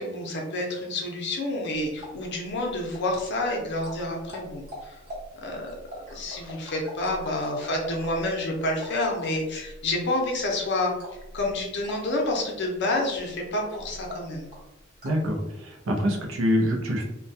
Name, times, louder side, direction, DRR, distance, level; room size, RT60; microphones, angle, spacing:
voice 1, 0.0-5.0 5.4-10.9 11.3-14.5, left 1 dB, 60° left, 0 dB, 0.6 m, -29 dB
sound 1, 1.7-15.3, equal, 40° right, 0.9 m, -44 dB
voice 2, 15.0-17.0, equal, 75° right, 1 dB, 0.5 m, -25 dB
2.2 x 2.2 x 2.6 m, 0.92 s
head